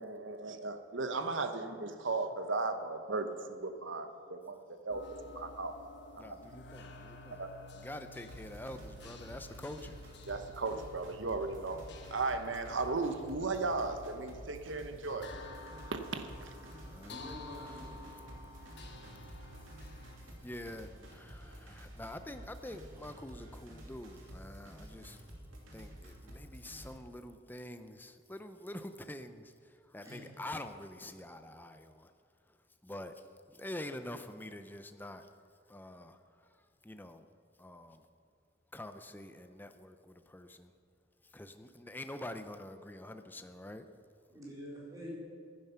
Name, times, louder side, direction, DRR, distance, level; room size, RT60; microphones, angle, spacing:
voice 1, 0.0-5.0 5.3-5.7 6.0-6.4 7.4-7.5 10.3-11.8 12.1-15.3 15.9-16.5, right 3 dB, 70° right, 8 dB, 1.0 m, -36 dB
sound 1, 4.9-20.2, left 2 dB, 60° left, 1.3 m, -52 dB
voice 2, 6.2-7.5 7.7-10.0 16.8-17.2 18.1-18.2 18.5-18.7 19.8-25.2 25.7-32.1 32.5-32.6 32.8-35.3 35.7-36.2 36.5-37.3 37.6-38.1 38.7-40.7 41.3-43.9, left 1 dB, 10° left, 8 dB, 0.6 m, -46 dB
sound 2, 8.3-27.0, equal, 85° right, 2.6 m, -51 dB
voice 3, 17.1-18.0 30.0-30.2 44.3-45.1, equal, 20° right, -5 dB, 4.3 m, -46 dB
15.0 x 11.0 x 5.7 m, 2.2 s
head